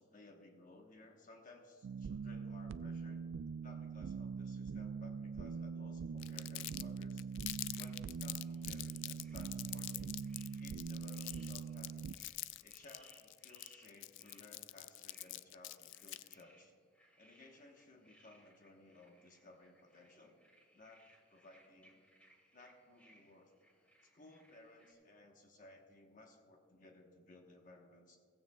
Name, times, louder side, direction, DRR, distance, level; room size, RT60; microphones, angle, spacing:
voice 1, 0.0-3.3 3.6-7.3 7.5-10.2 10.5-12.1 12.6-16.7 17.2-20.4 20.7-22.0 22.5-23.5 24.0-28.2, left 2 dB, 45° left, 2 dB, 1.1 m, -60 dB
sound 1, 1.8-12.1, right 5 dB, 90° right, 0.3 m, -43 dB
Crumpling crinkling, 6.2-16.4, left 17 dB, 75° left, 0.3 m, -46 dB
sound 2, 7.6-24.9, equal, 5° left, 2.1 m, -68 dB
16.0 x 16.0 x 2.3 m, 2.1 s
head